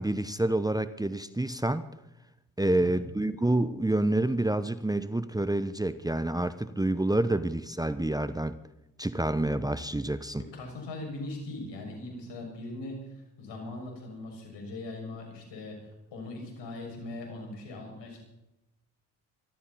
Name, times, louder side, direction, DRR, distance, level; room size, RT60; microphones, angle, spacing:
voice 1, 0.0-1.8 2.6-8.5 9.0-10.4, right 1 dB, 10° right, 13 dB, 1.0 m, -28 dB
voice 2, 10.4-15.8 16.1-18.2, left 2 dB, 75° left, 1 dB, 6.7 m, -40 dB
23.5 x 14.0 x 4.3 m, 0.91 s
hypercardioid pair, 45°, 43 cm